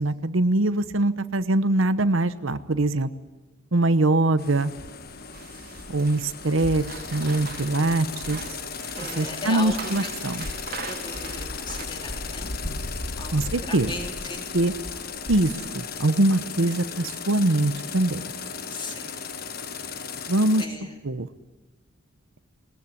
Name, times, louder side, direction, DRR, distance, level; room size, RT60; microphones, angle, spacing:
voice 1, 0.0-3.1 3.7-4.7 5.9-6.8 7.1-8.4 9.2-10.4 13.3-13.9 14.5-14.7 15.3-18.2 20.3-20.6 21.0-21.3, right 2 dB, 75° right, 12 dB, 1.0 m, -23 dB
sound 1, 4.4-20.7, left 6 dB, 45° left, 1.3 m, -36 dB
sound 2, 5.3-11.9, right 4 dB, 45° right, 2.3 m, -40 dB
voice 2, 8.9-10.1 10.9-14.5 18.7-19.1 20.2-20.9, left 2 dB, 25° left, 2 dB, 3.5 m, -37 dB
sound 3, 10.2-16.0, left 1 dB, 70° left, 1.7 m, -37 dB
20.0 x 19.0 x 9.9 m, 1.1 s
head